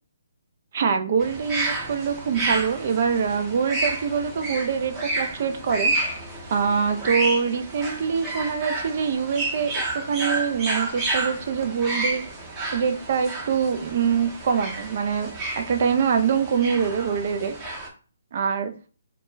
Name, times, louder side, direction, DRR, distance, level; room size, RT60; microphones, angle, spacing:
voice 1, 0.7-5.9 6.5-12.3 12.7-17.5 18.3-18.7, right 6 dB, 50° right, 0.4 m, -24 dB
sound 1, 1.2-17.9, right 2 dB, 20° right, 0.7 m, -30 dB
2.2 x 2.1 x 3.1 m
figure-of-eight pair, 135°, 0 cm